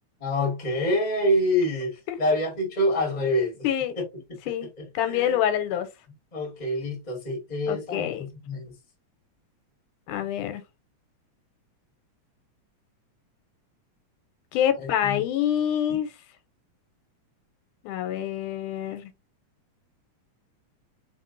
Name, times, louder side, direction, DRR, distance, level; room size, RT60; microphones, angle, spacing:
voice 1, 0.2-3.6 4.0-4.1 4.8-5.3 6.3-8.7 14.8-15.2 15.9-16.0, left 1 dB, 20° left, 1.4 m, -27 dB
voice 2, 3.6-4.0 4.5-4.7 4.9-5.9 7.7-8.3 10.1-10.6 14.5-16.1 17.8-19.1, left 10 dB, 90° left, 2.2 m, -26 dB
4.1 x 3.7 x 2.7 m
omnidirectional pair, 3.5 m